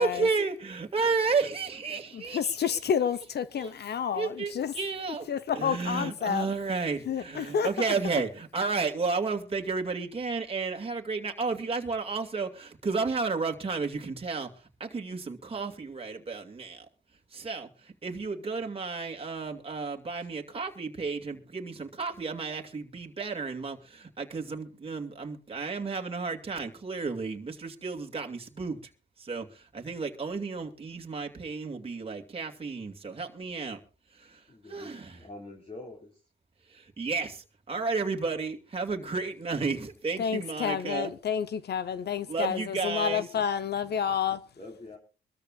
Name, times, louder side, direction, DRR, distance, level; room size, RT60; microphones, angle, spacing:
voice 1, 0.0-2.8 3.6-3.7 4.1-14.5 14.8-16.9 17.3-17.7 18.0-28.8 29.2-33.8 34.2-34.4 34.7-35.2 36.7-41.1 42.3-43.2, right 4 dB, 30° right, 2.4 m, -32 dB
voice 2, 2.1-4.7 5.3-6.5 7.1-7.9 40.2-44.4, left 7 dB, 55° left, 1.0 m, -29 dB
voice 3, 34.5-36.2 44.6-45.0, left 2 dB, 30° left, 4.2 m, -45 dB
24.5 x 13.5 x 2.5 m
cardioid pair, 90°, 20 cm